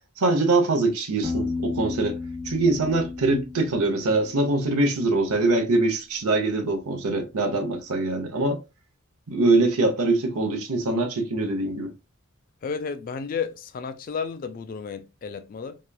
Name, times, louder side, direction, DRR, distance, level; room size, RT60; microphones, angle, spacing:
voice 1, 0.2-2.2 2.4-8.6 9.3-11.9, right 2 dB, 85° right, 0.7 m, -23 dB
Piano, 1.2-4.9, left 3 dB, 20° right, 0.7 m, -33 dB
voice 2, 12.6-15.8, left 6 dB, 40° left, 0.3 m, -32 dB
2.9 x 2.3 x 2.2 m
head